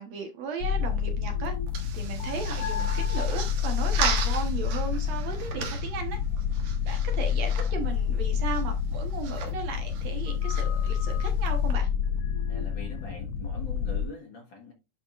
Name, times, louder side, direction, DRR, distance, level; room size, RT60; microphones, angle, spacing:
voice 1, 0.0-1.5 1.9-6.2 6.9-11.9, right 5 dB, 65° right, 2.2 m, -36 dB
sound 1, 0.6-14.1, left 7 dB, 80° left, 1.4 m, -28 dB
sound 2, 0.8-11.7, right 6 dB, 85° right, 2.8 m, -38 dB
voice 2, 12.5-14.7, left 4 dB, 50° left, 1.8 m, -43 dB
10.5 x 4.4 x 2.4 m
omnidirectional pair, 3.5 m